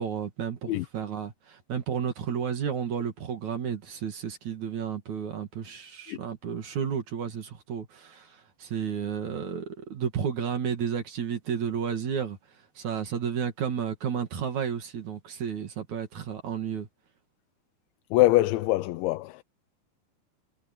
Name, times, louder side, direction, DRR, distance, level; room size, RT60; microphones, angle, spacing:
voice 1, 0.0-12.4 12.8-16.9, right 7 dB, 50° right, 2.8 m, -32 dB
voice 2, 18.1-19.4, left 17 dB, 85° left, 3.2 m, -23 dB
omnidirectional pair, 5.1 m